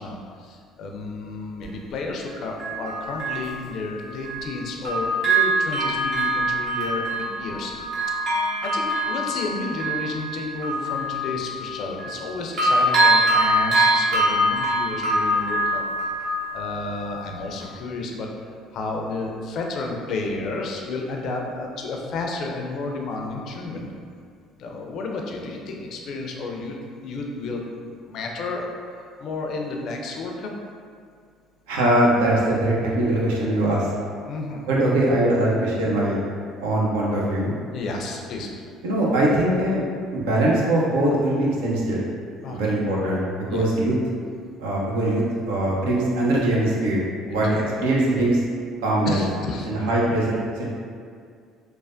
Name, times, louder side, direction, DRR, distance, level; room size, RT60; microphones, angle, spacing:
voice 1, 0.0-7.0 7.4-8.1 8.6-15.8 16.5-18.3 18.7-23.9 24.6-30.5 34.2-34.6 37.7-38.5 42.4-42.8 43.5-43.6 47.3-47.6 49.0-49.7, left 3 dB, 60° left, 1 dB, 0.4 m, -31 dB
Bell, 1.6-1.7 2.6-4.6 4.8-12.3 12.6-17.2 17.6-17.7, right 1 dB, 60° right, 0.9 m, -24 dB
voice 2, 31.7-33.9 34.7-36.2 36.6-37.5 38.8-39.9 40.1-42.0 42.5-43.9 44.6-47.0 47.2-48.4 48.8-49.2 49.7-50.7, right 1 dB, 80° right, -4 dB, 0.5 m, -22 dB
3.2 x 2.1 x 2.5 m, 2.2 s
hypercardioid pair, 65°, 0 cm